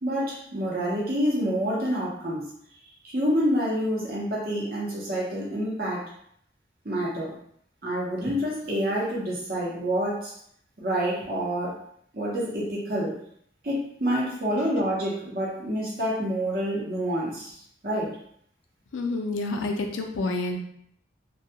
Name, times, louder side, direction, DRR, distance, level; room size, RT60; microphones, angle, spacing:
voice 1, 0.0-2.4 3.0-6.1 6.8-7.3 7.8-10.3 10.8-11.8 12.1-13.1 13.6-18.2, equal, 50° right, -5 dB, 0.7 m, -27 dB
voice 2, 18.9-20.6, left 2 dB, 90° left, 3 dB, 0.4 m, -28 dB
2.2 x 2.1 x 2.8 m, 0.67 s
head